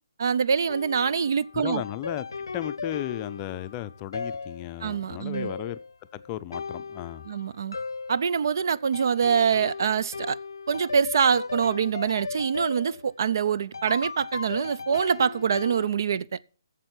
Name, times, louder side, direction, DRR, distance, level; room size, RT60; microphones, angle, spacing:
voice 1, 0.2-1.8 4.8-5.5 7.3-7.8 8.1-10.4 10.7-16.4, right 7 dB, 60° right, 0.4 m, -25 dB
sound 1, 0.7-15.9, left 4 dB, 80° left, 0.6 m, -37 dB
voice 2, 1.5-2.3 2.5-5.8 6.1-7.2, left 13 dB, 25° left, 0.5 m, -34 dB
8.6 x 7.4 x 8.2 m
figure-of-eight pair, 145°, 2 cm